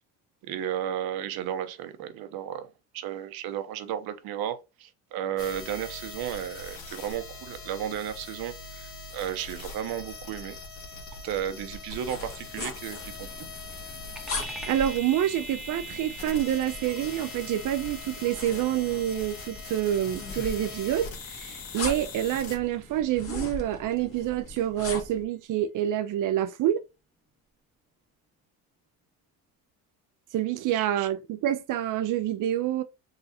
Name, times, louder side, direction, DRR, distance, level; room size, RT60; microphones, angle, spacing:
voice 1, 0.4-10.6 11.2-13.3 30.7-31.1, right 10 dB, 70° right, 0.9 m, -34 dB
sound 1, 5.4-22.6, left 4 dB, 70° left, 1.7 m, -42 dB
sound 2, 11.9-25.2, left 3 dB, 35° left, 1.6 m, -41 dB
sound 3, 14.2-24.0, right 2 dB, ahead, 1.1 m, -44 dB
voice 2, 14.5-26.8 30.3-32.8, right 11 dB, 55° right, 0.5 m, -27 dB
4.0 x 3.9 x 2.7 m
cardioid pair, 120°, 38 cm